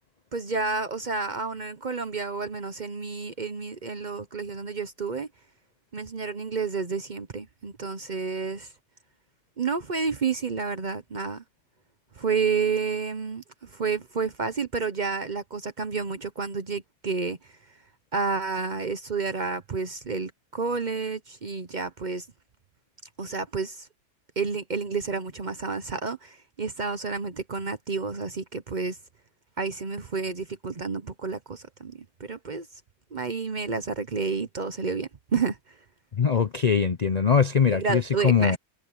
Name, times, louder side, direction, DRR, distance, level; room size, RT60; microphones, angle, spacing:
voice 1, 0.3-5.3 5.9-8.7 9.6-11.4 12.2-17.4 18.1-22.2 23.2-23.9 24.4-29.0 29.6-32.7 33.1-35.6 37.7-38.6, right 4 dB, 40° right, 0.7 m, -30 dB
voice 2, 36.2-38.6, left 6 dB, 90° left, 0.3 m, -22 dB
omnidirectional pair, 1.7 m